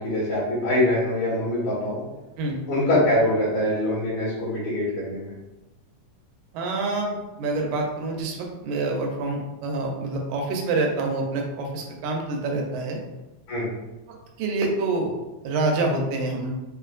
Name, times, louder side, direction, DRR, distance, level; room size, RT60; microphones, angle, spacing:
voice 1, 0.0-2.0 2.7-5.3 13.5-13.7, left 1 dB, 65° left, -10 dB, 2.7 m, -23 dB
voice 2, 6.5-13.0 14.1-15.1 15.4-16.5, right 3 dB, 80° right, 1 dB, 2.0 m, -27 dB
5.7 x 2.6 x 2.4 m, 1.0 s
omnidirectional pair, 3.5 m